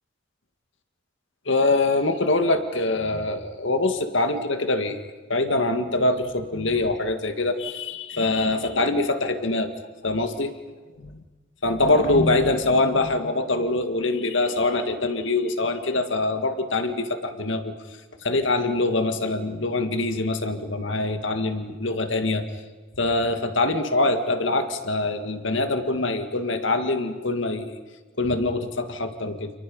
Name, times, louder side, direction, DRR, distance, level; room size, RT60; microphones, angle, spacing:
voice 1, 1.5-5.0 5.3-9.7 10.0-10.5 11.6-17.7 18.2-22.4 23.0-27.8 28.2-29.5, left 2 dB, 70° left, 7 dB, 2.0 m, -24 dB
29.5 x 29.0 x 5.5 m, 1.3 s
head